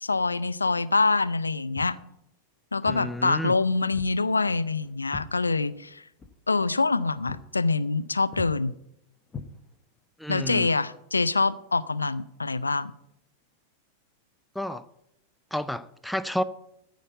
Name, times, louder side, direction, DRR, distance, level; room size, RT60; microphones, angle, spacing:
voice 1, 0.0-2.0 2.7-6.0 6.5-8.7 10.3-12.9 14.7-14.8, left 3 dB, 80° left, 17 dB, 0.5 m, -25 dB
Walk footsteps, 1.7-2.0 2.8-3.1 3.9-4.2 4.5-5.9 6.2-6.4 6.8-7.0 7.3-7.5 7.8-8.0 8.3-8.6 9.3-10.0, left 4 dB, 20° left, 1.0 m, -42 dB
voice 2, 2.8-3.5 10.2-10.7 14.6-14.8 15.5-16.4, equal, ahead, 14 dB, 0.5 m, -31 dB
14.0 x 5.2 x 8.0 m, 0.80 s
figure-of-eight pair, 90°, 0 cm